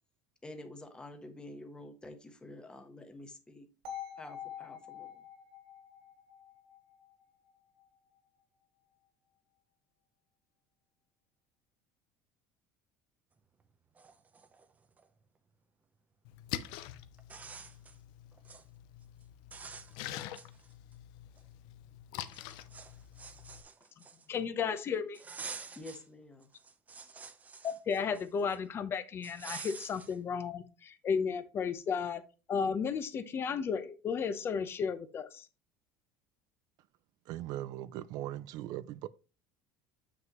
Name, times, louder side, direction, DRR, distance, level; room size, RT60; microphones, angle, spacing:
voice 1, 0.4-3.7 4.2-5.2 25.7-26.5, left 2 dB, 10° left, 1.1 m, -48 dB
sound 1, 3.8-7.8, left 9 dB, 90° right, 2.8 m, -47 dB
sound 2, 13.6-13.7 14.0-15.1 16.6-16.7 17.2-18.0 18.3-18.6 19.0-19.2 19.5-20.9 21.4-21.5 22.3-24.4 25.1-26.1 26.4-28.6 29.2-30.2, right 5 dB, 20° right, 0.7 m, -48 dB
Splash splatter, 16.2-23.6, left 12 dB, 70° left, 0.6 m, -45 dB
voice 2, 24.3-25.2 27.6-32.2 32.5-35.5, left 6 dB, 30° left, 0.8 m, -33 dB
voice 3, 37.3-39.1, right 13 dB, 55° right, 0.4 m, -39 dB
7.4 x 6.3 x 3.0 m
cardioid pair, 145°, 8 cm